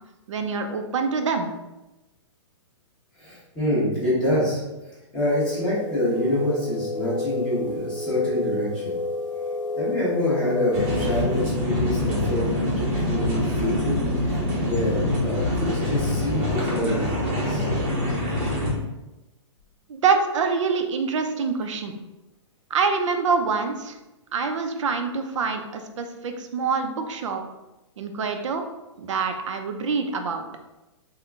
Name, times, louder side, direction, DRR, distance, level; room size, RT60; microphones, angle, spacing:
voice 1, 0.3-1.5 19.9-21.9 22.7-24.0 24.3-27.4 28.0-28.6 29.0-30.4, right 5 dB, 75° right, 6 dB, 0.6 m, -25 dB
voice 2, 3.2-4.6 5.1-9.0 9.8-12.5 12.8-13.9 14.2-17.6, left 1 dB, 5° left, -11 dB, 1.1 m, -26 dB
sound 1, 5.3-11.5, left 2 dB, 75° left, 0.8 m, -30 dB
sound 2, 10.7-18.7, left 1 dB, 25° right, 0.8 m, -25 dB
3.7 x 2.2 x 3.5 m, 1.0 s
hypercardioid pair, 175°, 16 cm